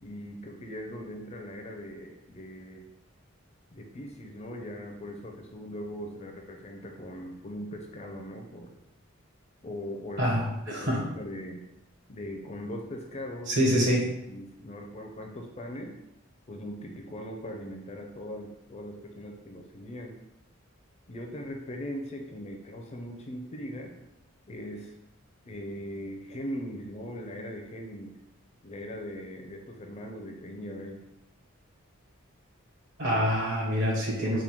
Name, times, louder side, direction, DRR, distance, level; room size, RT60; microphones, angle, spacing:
voice 1, 0.0-2.8 3.7-8.7 9.6-10.3 10.7-11.7 12.1-13.5 14.3-16.0 16.5-20.1 21.1-23.9 24.5-24.9 25.4-28.2 28.6-31.0, equal, 30° left, 3 dB, 0.4 m, -40 dB
voice 2, 10.2-11.0 13.5-14.1 33.0-34.4, equal, 55° right, -3 dB, 1.1 m, -26 dB
3.6 x 2.2 x 4.4 m, 0.87 s
head